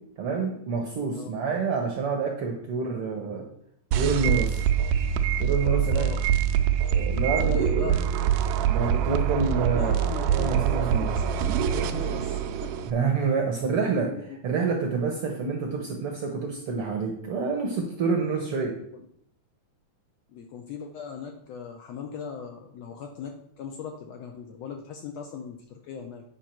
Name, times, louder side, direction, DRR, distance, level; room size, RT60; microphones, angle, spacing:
voice 1, 0.2-3.5 3.9-4.6 5.4-6.1 6.9-7.7 8.7-11.1 12.9-14.1 14.4-18.8, right 4 dB, 70° right, 2 dB, 1.4 m, -28 dB
sound 1, 3.9-12.9, right 9 dB, 85° right, 2.2 m, -24 dB
voice 2, 5.6-6.2 7.4-8.0 9.7-12.9 14.1-14.4 18.9-19.0 20.3-26.2, left 6 dB, 75° left, 3 dB, 1.6 m, -39 dB
8.9 x 5.4 x 4.4 m, 0.69 s
omnidirectional pair, 3.6 m